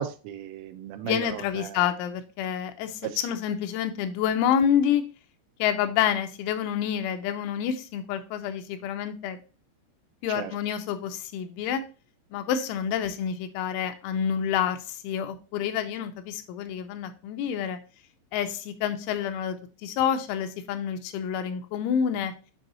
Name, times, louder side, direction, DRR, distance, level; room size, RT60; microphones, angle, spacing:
voice 1, 0.0-1.8 3.0-3.3 10.4-10.5, right 10 dB, 90° right, 9 dB, 3.3 m, -35 dB
voice 2, 1.0-5.0 5.6-9.4 10.2-11.8 12.3-17.8 18.3-22.3, left 8 dB, 85° left, 8 dB, 3.0 m, -28 dB
7.8 x 5.4 x 2.8 m, 0.34 s
omnidirectional pair, 5.6 m